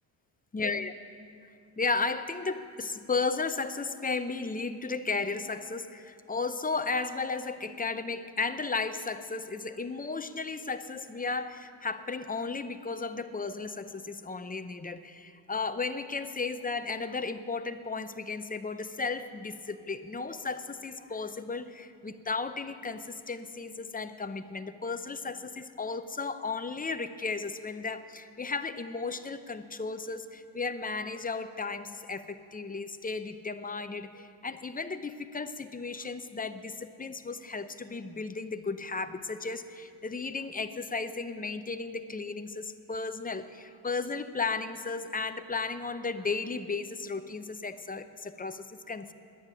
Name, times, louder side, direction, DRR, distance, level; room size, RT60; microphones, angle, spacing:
voice 1, 0.5-0.9 1.8-49.1, left 4 dB, 20° left, 10 dB, 0.5 m, -34 dB
10.5 x 10.0 x 9.9 m, 2.5 s
wide cardioid pair, 130°, 44 cm